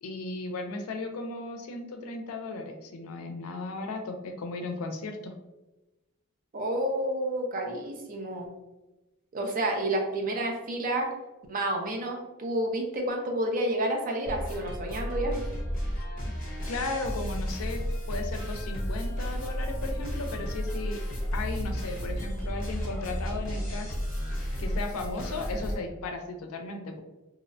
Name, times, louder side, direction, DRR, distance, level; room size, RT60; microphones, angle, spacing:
voice 1, 0.0-5.3 16.2-16.3 16.7-17.8 18.1-21.0 21.3-23.9 24.6-27.0, left 3 dB, 80° left, 4 dB, 0.4 m, -36 dB
voice 2, 6.5-8.5 9.3-11.1 11.5-15.4, right 1 dB, 40° right, 2 dB, 0.4 m, -30 dB
sound 1, 14.2-25.8, equal, 40° left, 0.9 m, -33 dB
2.7 x 2.1 x 2.5 m, 1.1 s
head